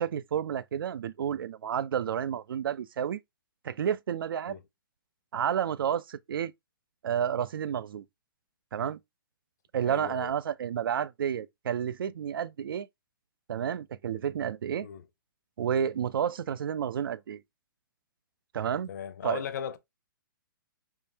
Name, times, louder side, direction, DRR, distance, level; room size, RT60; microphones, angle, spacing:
voice 1, 0.0-3.2 3.6-4.6 5.3-6.5 7.0-8.0 8.7-9.0 9.7-12.9 13.5-14.9 15.6-17.4 18.5-18.9 19.2-19.4, right 8 dB, 85° right, 0.4 m, -30 dB
voice 2, 9.9-10.3 14.8-15.0 18.9-19.8, left 8 dB, 55° left, 0.7 m, -37 dB
3.6 x 3.4 x 2.7 m
hypercardioid pair, 160°, 11 cm